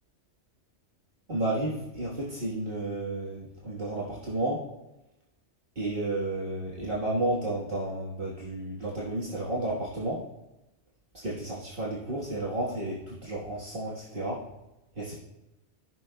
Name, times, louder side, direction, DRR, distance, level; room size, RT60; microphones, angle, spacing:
voice 1, 1.3-4.6 5.7-10.2 11.2-14.4 15.0-15.2, right 1 dB, 50° right, -7 dB, 1.6 m, -32 dB
14.5 x 6.2 x 2.2 m, 0.95 s
omnidirectional pair, 1.2 m